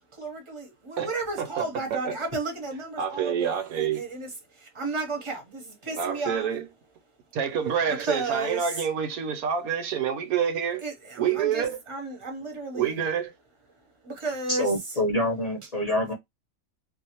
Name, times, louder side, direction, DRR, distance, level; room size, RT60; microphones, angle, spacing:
voice 1, 0.2-4.3 4.7-6.5 7.9-8.7 10.8-13.0 14.0-15.0, right 3 dB, 30° right, 0.6 m, -33 dB
voice 2, 1.4-2.1 3.0-4.0 6.0-6.7 7.3-10.8 11.2-11.8 12.7-13.3, right 8 dB, 80° right, 1.1 m, -27 dB
voice 3, 14.5-16.1, equal, 35° left, 0.7 m, -26 dB
2.6 x 2.0 x 2.8 m
omnidirectional pair, 1.6 m